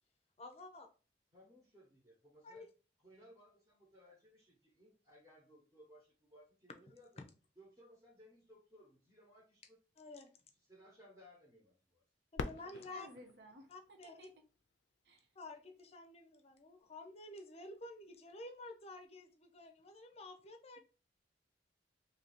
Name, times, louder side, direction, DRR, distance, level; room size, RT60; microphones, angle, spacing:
voice 1, 0.4-0.9 2.4-2.7 6.9-7.2 10.0-10.3 12.3-13.1 13.7-14.3 15.3-20.8, left 2 dB, 35° left, 0.6 m, -51 dB
voice 2, 1.3-2.7 3.0-7.1 7.6-9.8 10.7-12.0, equal, 25° right, 1.2 m, -62 dB
Fireworks, 12.3-15.1 15.8-15.9 16.6-17.0 18.9-19.1, left 4 dB, 90° left, 0.4 m, -47 dB
voice 3, 12.7-14.3 15.0-15.3, equal, 65° right, 0.6 m, -56 dB
2.7 x 2.7 x 4.2 m
head